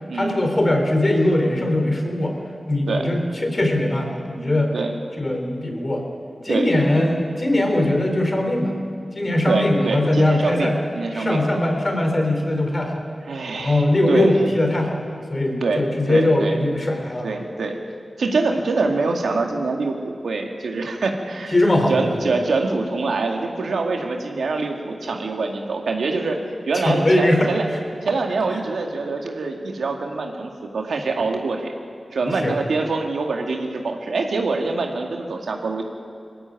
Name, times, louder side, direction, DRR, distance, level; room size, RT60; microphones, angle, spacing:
voice 1, 0.1-2.3 2.7-4.7 5.2-6.1 6.4-8.7 9.1-10.8 11.1-12.9 13.5-17.3 21.5-22.2 26.7-27.5 32.3-32.6, left 1 dB, 40° left, 2 dB, 4.1 m, -20 dB
voice 2, 6.5-7.0 9.5-11.4 13.3-14.3 15.6-16.6 17.2-17.8 18.2-21.6 21.9-26.4 26.7-27.7 28.0-31.7 32.1-35.8, right 3 dB, 90° right, 2 dB, 2.1 m, -24 dB
20.0 x 14.0 x 9.5 m, 2.4 s
cardioid pair, 50°, 0 cm